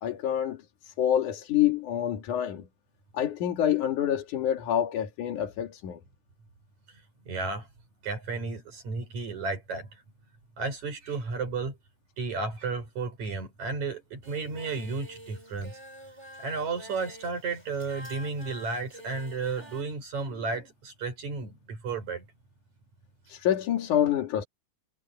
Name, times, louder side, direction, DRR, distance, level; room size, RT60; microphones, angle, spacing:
voice 1, 0.0-0.6 0.9-2.7 3.1-6.0 23.3-24.4, left 10 dB, 80° left, 3.4 m, -27 dB
voice 2, 7.3-7.7 8.0-9.9 10.6-11.8 12.2-15.8 16.4-22.2, right 4 dB, 70° right, 6.7 m, -33 dB
Singing, 14.2-19.8, equal, 10° right, 4.8 m, -47 dB
omnidirectional pair, 3.4 m